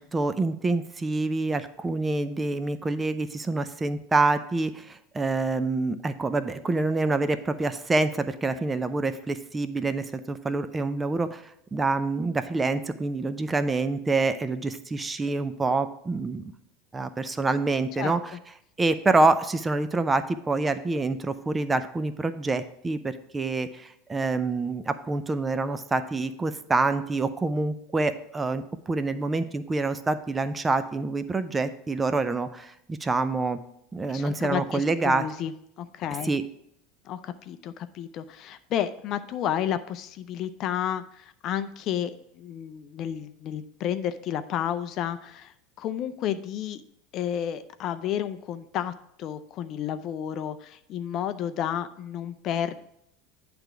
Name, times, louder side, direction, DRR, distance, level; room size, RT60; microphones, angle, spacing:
voice 1, 0.0-16.5 16.9-18.3 18.8-33.6 33.9-35.3 36.2-36.4, right 3 dB, 20° right, 12 dB, 0.5 m, -26 dB
voice 2, 34.1-35.5 35.8-36.3 37.0-46.8 47.1-52.8, left 10 dB, 50° left, 11 dB, 0.4 m, -31 dB
8.9 x 3.4 x 5.9 m, 0.74 s
hypercardioid pair, 80°, 0 cm